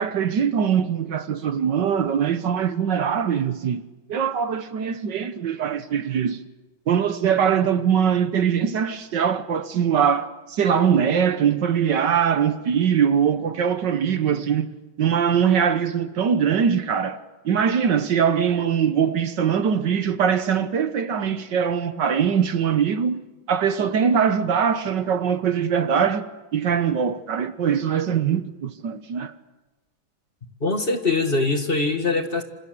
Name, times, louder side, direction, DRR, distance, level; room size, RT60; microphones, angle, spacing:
voice 1, 0.0-3.8 4.1-6.4 6.9-14.7 15.0-17.2 17.4-23.2 23.5-26.3 26.5-29.3, right 7 dB, 65° right, 1.7 m, -22 dB
voice 2, 30.6-32.4, left 3 dB, 30° left, 1.9 m, -22 dB
28.0 x 26.0 x 7.9 m
omnidirectional pair, 2.1 m